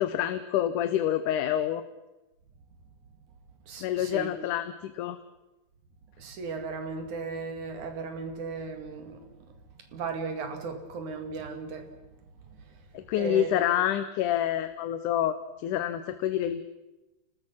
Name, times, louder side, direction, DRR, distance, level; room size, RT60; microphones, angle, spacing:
voice 1, 0.0-1.8 3.8-5.2 12.9-16.7, left 11 dB, 75° left, 11 dB, 2.3 m, -27 dB
voice 2, 3.7-4.3 6.2-9.2 9.9-11.9 13.2-13.6, right 4 dB, 65° right, 6 dB, 3.6 m, -36 dB
29.5 x 19.5 x 5.8 m, 1.0 s
omnidirectional pair, 3.8 m